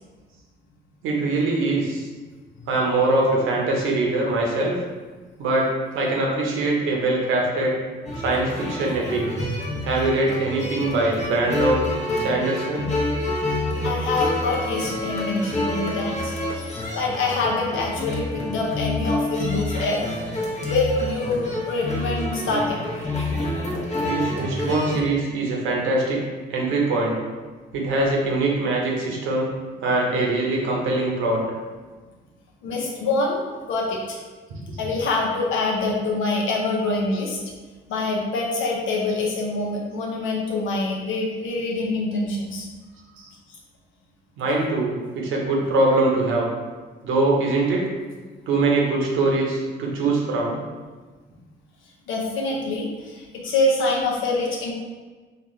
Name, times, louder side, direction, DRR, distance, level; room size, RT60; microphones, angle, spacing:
voice 1, 1.0-2.1 2.7-4.8 5.4-7.8 8.2-9.2 9.8-11.8 12.2-12.9 24.1-26.2 26.5-27.2 27.7-29.5 29.8-31.4 34.7-34.8 43.2-43.3 44.4-46.5 47.0-47.9 48.5-50.6, right 2 dB, 90° right, -1 dB, 0.9 m, -22 dB
sound 1, 8.0-25.0, left 1 dB, 35° left, 0.9 m, -28 dB
voice 2, 13.6-20.0 20.7-22.8 32.6-34.2 34.8-37.4 37.9-42.7 52.1-54.7, left 2 dB, 80° left, -2 dB, 0.9 m, -25 dB
4.3 x 2.5 x 3.1 m, 1.4 s
cardioid pair, 90°, 20 cm